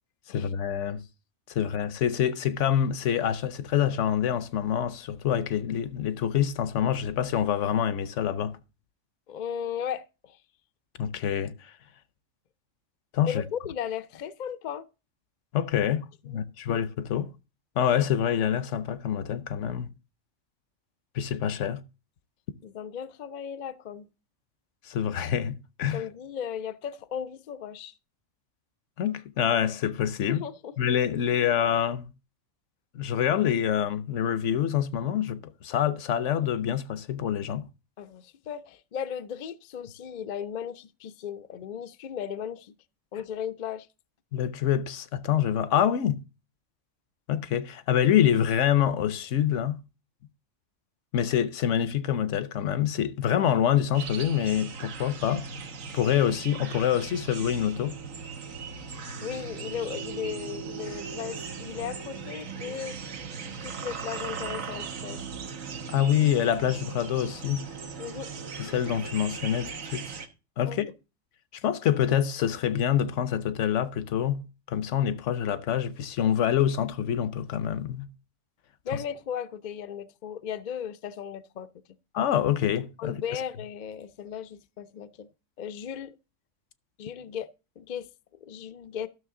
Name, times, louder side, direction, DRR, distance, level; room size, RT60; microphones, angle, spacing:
voice 1, 0.3-1.0 1.5-8.6 11.0-11.7 13.1-13.4 15.5-17.3 17.8-19.9 21.1-21.8 24.8-26.0 29.0-30.4 30.8-32.1 32.9-37.7 44.3-46.2 47.3-49.8 51.1-55.5 55.9-58.0 65.9-67.7 68.6-70.2 70.6-70.8 71.5-74.4 74.7-78.1 82.1-83.2, left 9 dB, 70° left, 1.0 m, -26 dB
voice 2, 9.3-10.4 13.2-14.8 16.2-16.4 22.6-24.1 25.9-27.9 30.3-30.7 38.0-42.7 43.1-43.9 59.2-63.0 63.6-65.2 68.0-68.3 70.6-70.9 78.8-81.7 83.0-85.3 85.6-86.2 87.0-88.1 88.4-89.1, left 8 dB, 55° left, 0.5 m, -36 dB
sound 1, 53.9-70.3, right 5 dB, 85° right, 1.5 m, -38 dB
12.5 x 6.4 x 3.7 m
omnidirectional pair, 1.3 m